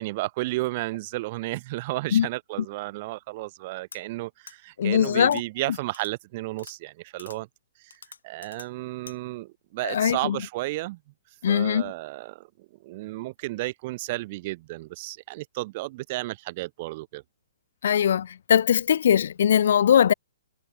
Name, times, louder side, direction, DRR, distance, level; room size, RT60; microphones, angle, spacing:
voice 1, 0.0-7.5 7.8-7.9 8.2-11.0 11.5-17.2, right 20 dB, 35° right, 1.1 m, -33 dB
sound 1, 3.9-4.0 4.5-4.6 5.2-5.4 5.9-6.1 6.6-6.7 7.2-7.4 7.9-8.7 9.1-9.2, left 6 dB, 90° left, 2.9 m, -45 dB
voice 2, 4.8-5.4 9.8-10.4 11.4-11.9 17.8-20.1, left 9 dB, 65° left, 1.3 m, -21 dB
hypercardioid pair, 155°, 0 cm